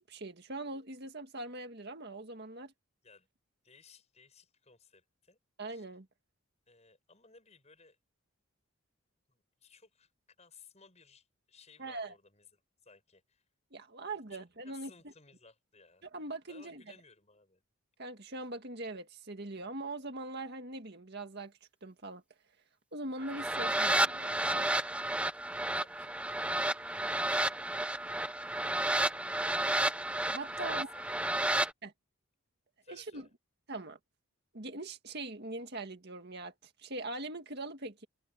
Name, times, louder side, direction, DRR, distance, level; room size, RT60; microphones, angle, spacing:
voice 1, 0.0-2.7 5.6-6.1 11.8-12.1 13.7-14.9 16.0-16.8 18.0-21.5 21.8-22.2 22.9-24.7 30.3-30.9 31.8-31.9 32.9-33.3 33.7-34.0 34.5-38.1, right 2 dB, 50° right, 2.0 m, -42 dB
voice 2, 3.6-5.4 5.7-5.9 6.7-8.0 9.3-10.1 10.4-13.4 14.1-16.0 16.5-17.6 25.6-27.8 30.6-31.7 32.8-33.3, left 5 dB, 30° left, 7.3 m, -60 dB
sound 1, 23.2-31.7, right 1 dB, 5° right, 0.7 m, -31 dB
head